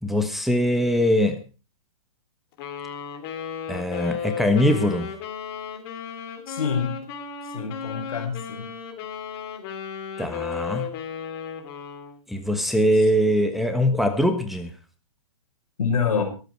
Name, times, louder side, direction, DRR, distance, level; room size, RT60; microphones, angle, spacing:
voice 1, 0.0-1.4 3.7-5.1 10.2-10.9 12.3-14.7, equal, ahead, 5 dB, 1.3 m, -22 dB
Wind instrument woodwind instrument, 2.6-12.2, left 7 dB, 40° left, 3.4 m, -34 dB
voice 2, 6.5-7.0 7.5-8.7 12.7-12.8 15.8-16.2, left 6 dB, 75° left, 4 dB, 5.6 m, -26 dB
23.0 x 8.2 x 4.6 m, 0.34 s
hypercardioid pair, 130°, 18 cm